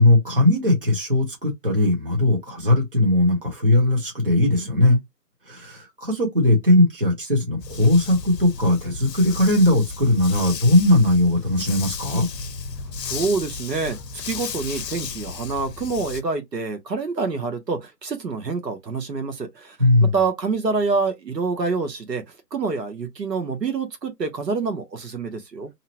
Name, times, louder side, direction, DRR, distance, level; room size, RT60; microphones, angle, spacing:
voice 1, 0.0-5.0 5.5-12.3 19.8-20.2, left 1 dB, 35° right, 1.1 m, -19 dB
Dog, 7.6-16.2, left 5 dB, 90° left, 0.6 m, -34 dB
voice 2, 13.0-14.0 14.3-22.2 22.5-25.7, right 4 dB, 80° right, 1.1 m, -26 dB
2.8 x 2.2 x 2.8 m
figure-of-eight pair, 175°, 48 cm